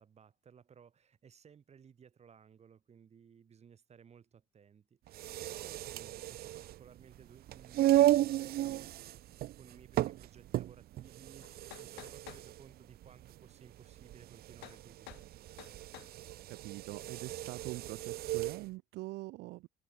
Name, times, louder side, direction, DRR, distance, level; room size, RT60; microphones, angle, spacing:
voice 1, 0.0-9.0 9.6-15.1, right 7 dB, 40° right, 4.9 m, -58 dB
sound 1, 5.1-18.6, right 14 dB, 65° right, 0.9 m, -34 dB
sound 2, 11.4-12.5 14.6-14.8 15.1-15.3 15.6-16.1, left 21 dB, 85° left, 0.8 m, -51 dB
voice 2, 16.5-19.7, right 20 dB, 90° right, 1.8 m, -44 dB
cardioid pair, 110°, 17 cm